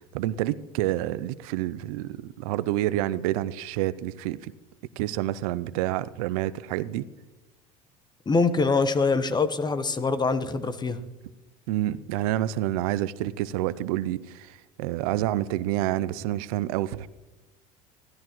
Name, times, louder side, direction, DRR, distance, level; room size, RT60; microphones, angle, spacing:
voice 1, 0.1-4.5 5.0-7.1 11.7-17.1, right 14 dB, 75° right, 18 dB, 0.5 m, -28 dB
voice 2, 8.3-11.0, left 4 dB, 25° left, 12 dB, 1.1 m, -24 dB
16.0 x 12.5 x 3.1 m, 1.1 s
hypercardioid pair, 80°, 18 cm